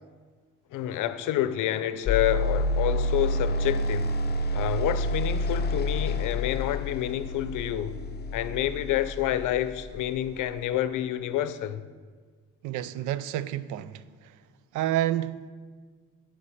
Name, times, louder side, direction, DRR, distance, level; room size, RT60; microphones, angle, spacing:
voice 1, 0.7-4.2 4.5-8.0 8.3-11.8, left 12 dB, 85° left, 0.6 m, -28 dB
sound 1, 2.1-10.2, left 1 dB, 35° left, 0.5 m, -29 dB
voice 2, 12.6-14.0 14.7-15.5, right 12 dB, 85° right, 0.4 m, -29 dB
9.8 x 5.4 x 5.5 m
cardioid pair, 90°, 30 cm